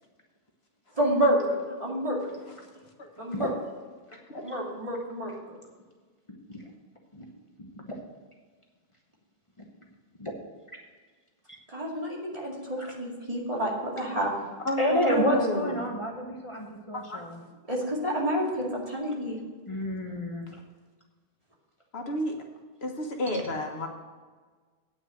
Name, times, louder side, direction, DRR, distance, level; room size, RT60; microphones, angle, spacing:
voice 1, 1.0-2.2 3.2-3.5 4.4-5.3 11.7-14.3 17.7-19.4, equal, 35° right, -3 dB, 2.5 m, -29 dB
voice 2, 6.3-6.6 7.1-7.3 7.6-7.9 9.6-9.7 10.2-10.3 12.8-12.9 14.8-17.4 19.7-20.6 23.3-23.4, equal, 30° left, 0 dB, 1.2 m, -30 dB
voice 3, 14.6-15.8 16.9-17.2 21.9-22.4 22.8-23.9, left 1 dB, 80° left, 2 dB, 1.6 m, -30 dB
9.2 x 6.0 x 7.8 m, 1.4 s
omnidirectional pair, 1.0 m